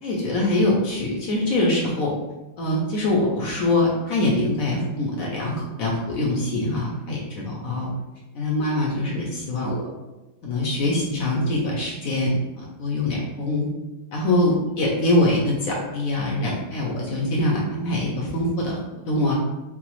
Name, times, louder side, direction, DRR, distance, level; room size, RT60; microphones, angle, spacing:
voice 1, 0.0-2.1 2.6-7.9 8.3-9.8 10.4-13.7 14.1-18.8 19.1-19.3, left 1 dB, 70° left, -3 dB, 0.8 m, -23 dB
4.8 x 2.0 x 3.0 m, 1.0 s
omnidirectional pair, 2.1 m